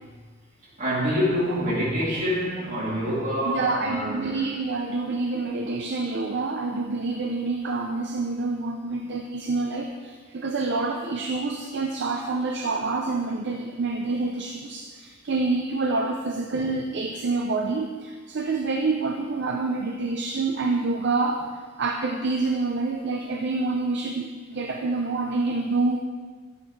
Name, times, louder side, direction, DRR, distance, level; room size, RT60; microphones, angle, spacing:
voice 1, 0.8-4.5, equal, 40° right, -7 dB, 3.0 m, -26 dB
voice 2, 3.5-21.5 21.8-26.0, right 3 dB, 60° right, 3 dB, 0.6 m, -27 dB
10.5 x 8.0 x 3.3 m, 1.5 s
head